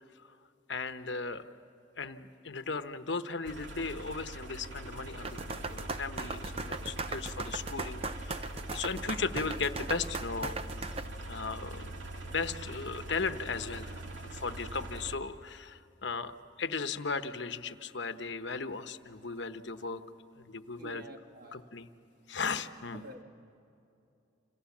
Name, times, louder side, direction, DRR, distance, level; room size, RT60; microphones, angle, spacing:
voice 1, 0.7-1.4 2.0-10.9 11.3-20.0 20.4-21.0 21.5-21.9 22.3-23.1, left 4 dB, 65° left, 9 dB, 1.0 m, -37 dB
sound 1, 3.4-15.2, right 1 dB, 70° right, 2.3 m, -42 dB
sound 2, 5.2-11.1, right 3 dB, 30° right, 0.7 m, -38 dB
voice 2, 20.8-21.7 22.9-23.2, right 1 dB, 50° right, 4 dB, 1.9 m, -48 dB
29.5 x 28.0 x 7.3 m, 2.7 s
head